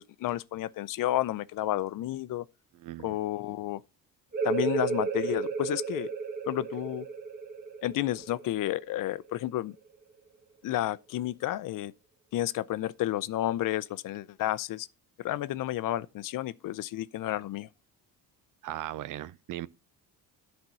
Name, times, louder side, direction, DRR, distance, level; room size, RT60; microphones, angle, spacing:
voice 1, 0.0-2.5 3.0-3.8 4.4-6.1 6.5-7.1 7.8-9.7 10.6-11.9 12.3-14.9 15.2-17.7, left 14 dB, 60° left, 0.6 m, -31 dB
voice 2, 2.7-3.1 18.6-19.7, right 14 dB, 60° right, 0.6 m, -38 dB
sound 1, 4.3-9.7, right 5 dB, 25° right, 1.1 m, -33 dB
10.5 x 4.4 x 5.5 m
cardioid pair, 130°, 36 cm